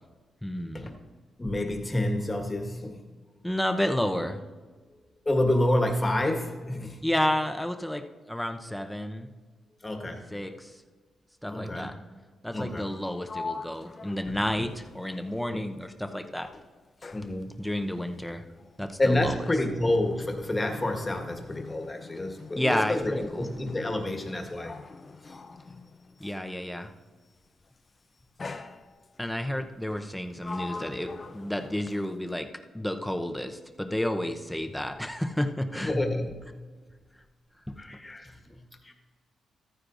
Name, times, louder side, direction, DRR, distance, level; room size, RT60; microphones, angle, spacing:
voice 1, 0.4-0.9 3.4-4.4 7.0-9.3 10.3-10.7 11.4-11.9 12.4-16.5 17.6-18.4 18.8-19.4 22.6-23.5 26.2-26.9 29.2-32.5 32.7-36.0 37.7-37.8, left 1 dB, 5° left, 6 dB, 0.8 m, -31 dB
voice 2, 1.4-3.0 5.2-7.1 9.8-10.3 11.5-11.9 12.5-12.9 14.2-14.6 15.5-15.7 17.1-17.5 19.0-24.8 25.2-25.4 25.7-25.8 35.7-36.5 37.8-38.9, left 1 dB, 25° left, 3 dB, 1.5 m, -29 dB
Sliding door, 12.8-16.1 16.4-26.6 27.5-27.8 28.4-29.3 29.9-32.4, left 4 dB, 40° left, 0.6 m, -44 dB
14.0 x 9.7 x 2.6 m, 1.4 s
cardioid pair, 75°, 0 cm